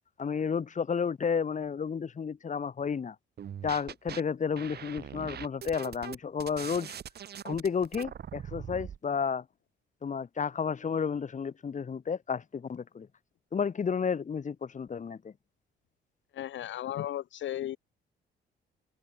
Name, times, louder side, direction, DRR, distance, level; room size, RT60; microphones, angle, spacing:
voice 1, 0.2-3.2 3.6-6.9 7.4-9.4 10.0-13.1 13.5-15.3, left 6 dB, 40° left, 2.0 m, -32 dB
sound 1, 3.4-4.2 4.6-9.0, right 9 dB, 55° right, 1.6 m, -42 dB
voice 2, 16.3-17.8, left 12 dB, 70° left, 1.3 m, -35 dB
cardioid pair, 90°, 20 cm